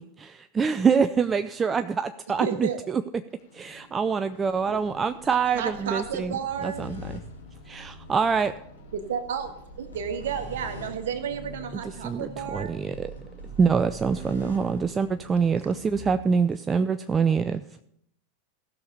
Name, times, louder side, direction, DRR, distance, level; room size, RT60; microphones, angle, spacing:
voice 1, 0.0-3.0 3.5-6.3 6.6-7.0 7.7-8.5 12.0-13.1 13.6-17.6, right 6 dB, 20° right, 0.4 m, -25 dB
voice 2, 2.4-2.8 4.7-4.8 5.5-6.9 8.9-9.5 9.8-12.8, right 7 dB, 65° right, 1.4 m, -32 dB
sound 1, 3.5-16.2, equal, 90° left, 2.4 m, -44 dB
voice 3, 7.2-8.1 13.1-13.6, left 12 dB, 60° left, 0.8 m, -66 dB
15.5 x 6.5 x 5.4 m
figure-of-eight pair, 90°, 0 cm